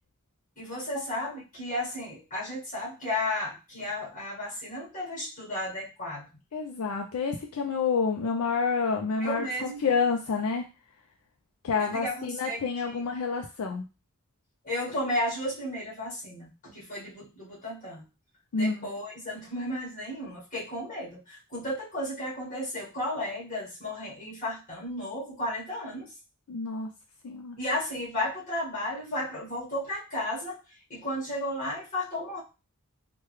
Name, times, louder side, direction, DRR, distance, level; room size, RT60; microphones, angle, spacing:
voice 1, 0.6-6.3 9.2-9.9 11.8-12.6 12.9-13.0 14.6-18.0 18.5-26.1 27.6-30.6 30.9-32.4, left 1 dB, 40° left, -4 dB, 1.6 m, -33 dB
voice 2, 6.5-10.7 11.6-13.8 18.5-18.9 26.5-26.9 27.2-27.6, left 5 dB, 75° left, 3 dB, 0.4 m, -28 dB
3.3 x 2.2 x 3.1 m, 0.29 s
head